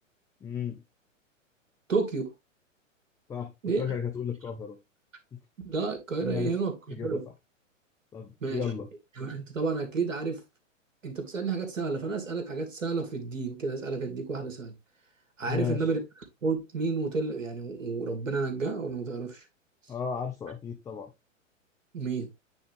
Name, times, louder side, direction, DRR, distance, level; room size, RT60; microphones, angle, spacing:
voice 1, 0.4-0.8 3.3-3.5 3.8-4.8 5.3-5.4 6.2-6.6 6.9-7.2 8.1-8.9 15.5-15.9 19.9-21.1, left 7 dB, 10° left, 0.5 m, -34 dB
voice 2, 1.9-2.3 3.6-3.8 5.6-7.2 8.4-8.6 9.2-10.4 11.0-14.7 15.4-16.0 16.4-19.4 21.9-22.3, right 4 dB, 70° right, 2.4 m, -31 dB
8.8 x 3.9 x 3.5 m
figure-of-eight pair, 110°, 39 cm